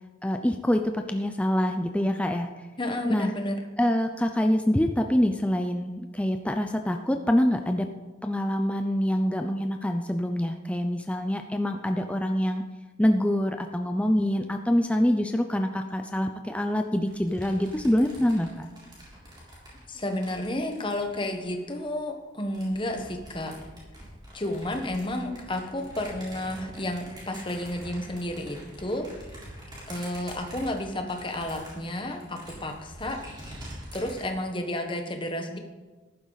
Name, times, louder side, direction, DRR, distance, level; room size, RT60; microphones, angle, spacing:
voice 1, 0.2-2.5 3.1-3.3 3.8-7.9 8.2-12.6 13.0-18.7, equal, 5° left, 5 dB, 0.4 m, -25 dB
voice 2, 2.8-3.6 19.9-23.5 24.3-29.0 29.9-33.2 33.9-35.6, left 1 dB, 25° left, 4 dB, 1.2 m, -31 dB
sound 1, 17.1-21.9 22.4-34.2, equal, 20° right, 3.9 m, -45 dB
14.0 x 11.5 x 4.0 m, 1.3 s
head